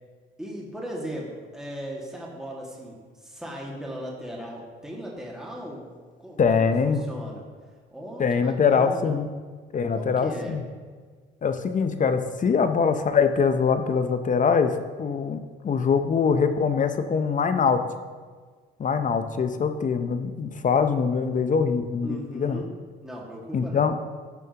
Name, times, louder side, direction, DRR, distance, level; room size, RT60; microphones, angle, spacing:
voice 1, 0.4-7.5 7.9-9.1 9.9-10.6 22.0-22.7 23.0-23.9, equal, 5° right, -3 dB, 1.9 m, -37 dB
voice 2, 6.4-7.0 8.2-9.3 9.7-10.6 11.4-17.8 18.8-22.6 23.5-24.1, left 6 dB, 40° left, 9 dB, 0.7 m, -23 dB
12.5 x 7.1 x 2.9 m, 1.5 s
cardioid pair, 90°, 20 cm